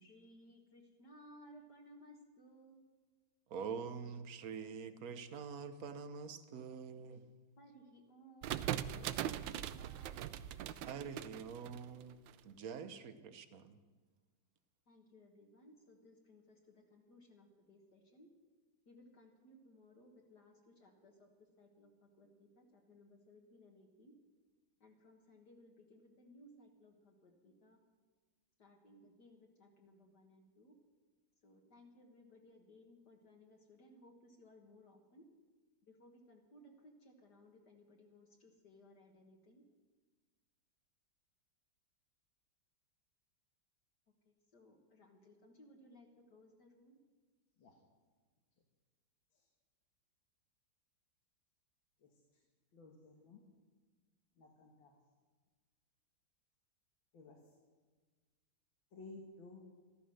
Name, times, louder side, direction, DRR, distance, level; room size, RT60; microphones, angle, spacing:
voice 1, 0.0-2.8 7.6-10.3 14.9-18.3 18.9-21.3 21.6-24.1 24.8-27.8 28.6-30.8 31.4-35.3 35.9-39.6 44.3-47.0, equal, 60° left, 0 dB, 2.2 m, -62 dB
voice 2, 3.5-7.2 10.9-12.2 12.4-13.8, right 6 dB, 55° right, 11 dB, 1.2 m, -45 dB
sound 1, 8.4-12.3, right 11 dB, 80° right, 1.3 m, -41 dB
voice 3, 52.7-53.4 54.4-54.9 57.1-57.4 58.9-59.8, left 3 dB, 85° left, 1 dB, 2.3 m, -54 dB
14.0 x 13.0 x 6.4 m, 1.4 s
omnidirectional pair, 2.1 m